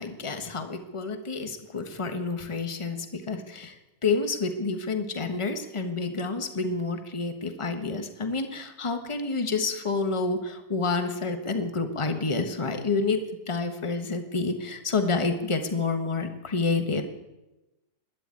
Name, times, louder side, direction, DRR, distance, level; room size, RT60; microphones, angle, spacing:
voice 1, 0.0-3.8 4.0-17.0, left 4 dB, 20° left, 7 dB, 1.2 m, -29 dB
12.5 x 10.0 x 8.9 m, 1.0 s
omnidirectional pair, 1.8 m